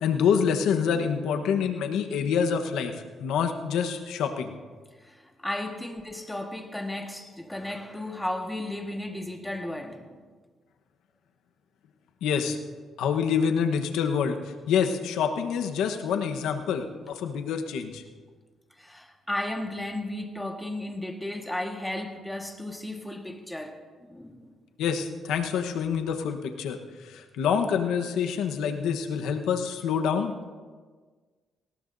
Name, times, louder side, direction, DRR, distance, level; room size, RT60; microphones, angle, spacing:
voice 1, 0.0-2.9 3.2-4.5 12.2-12.6 13.0-14.4 14.7-18.0 24.8-30.3, left 7 dB, 85° left, 1.1 m, -26 dB
voice 2, 5.0-10.2 18.8-24.5, left 1 dB, 5° left, 1.5 m, -34 dB
19.0 x 18.0 x 2.7 m
cardioid pair, 90°, 0 cm